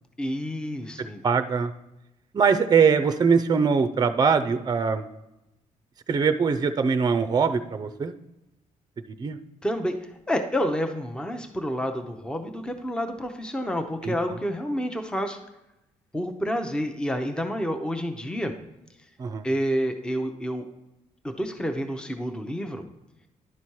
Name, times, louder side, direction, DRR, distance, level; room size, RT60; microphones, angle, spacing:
voice 1, 0.2-1.2 9.6-15.4 16.1-18.5 19.4-20.6 21.2-22.8, equal, 5° left, 6 dB, 0.7 m, -29 dB
voice 2, 1.2-1.7 2.3-5.1 6.1-8.1 9.1-9.4 14.0-14.1 19.2-19.4, right 5 dB, 30° right, 10 dB, 0.5 m, -22 dB
11.0 x 4.2 x 4.7 m, 0.92 s
cardioid pair, 105°, 13 cm